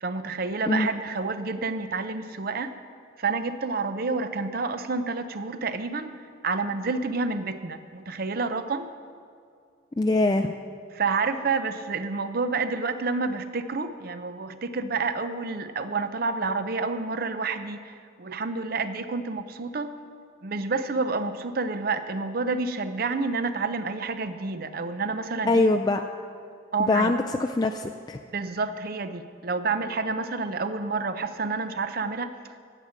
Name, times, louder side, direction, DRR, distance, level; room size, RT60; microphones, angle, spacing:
voice 1, 0.0-2.7 3.2-6.1 6.4-8.9 10.9-19.9 20.4-25.7 26.7-27.1 28.3-32.6, right 4 dB, 50° right, 10 dB, 0.5 m, -29 dB
voice 2, 10.0-10.5 25.5-26.0 26.9-28.2, left 2 dB, 20° left, 4 dB, 0.3 m, -23 dB
13.0 x 8.8 x 6.5 m, 2.2 s
head